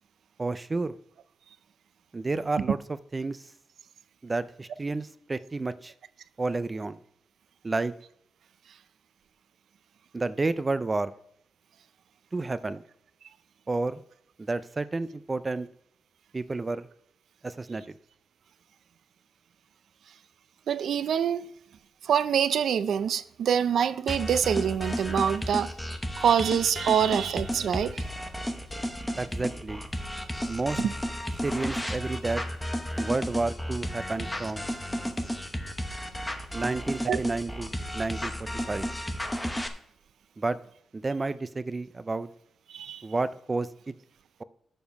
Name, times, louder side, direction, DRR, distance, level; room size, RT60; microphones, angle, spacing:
voice 1, 0.4-1.0 2.1-3.4 4.2-5.9 6.4-7.0 7.6-7.9 10.1-11.1 12.3-12.8 13.7-14.0 14.4-15.7 16.3-16.9 17.4-17.9 29.2-29.8 30.5-30.8 31.4-32.4 33.0-34.7 36.5-38.9 40.4-40.6 40.9-42.3 43.0-43.9, right 3 dB, 20° right, 0.4 m, -31 dB
voice 2, 20.7-21.5 22.0-25.7 26.2-28.0 30.8-30.9 37.1-37.2 42.7-43.0, right 8 dB, 80° right, 0.5 m, -25 dB
sound 1, 24.1-39.7, equal, 5° left, 0.9 m, -33 dB
8.7 x 7.1 x 5.2 m
wide cardioid pair, 155°, 0 cm